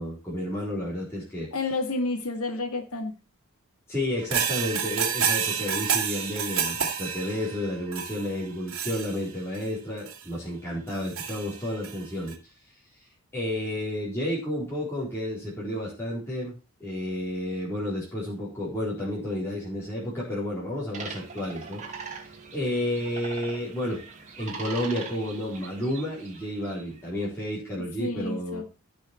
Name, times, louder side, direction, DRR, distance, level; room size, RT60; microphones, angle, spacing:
voice 1, 0.0-1.5 3.9-12.5 13.3-16.5 16.8-24.0 24.4-28.6, left 1 dB, 10° left, -7 dB, 4.1 m, -31 dB
voice 2, 1.5-3.1 27.8-28.7, left 3 dB, 80° left, 7 dB, 2.1 m, -30 dB
sound 1, 4.2-9.6 10.1-10.2 10.9-12.0 12.3-12.4, right 7 dB, 65° right, 2.3 m, -29 dB
sound 2, 20.9-27.0, right 5 dB, 35° right, 2.6 m, -41 dB
15.5 x 6.4 x 4.5 m, 0.31 s
head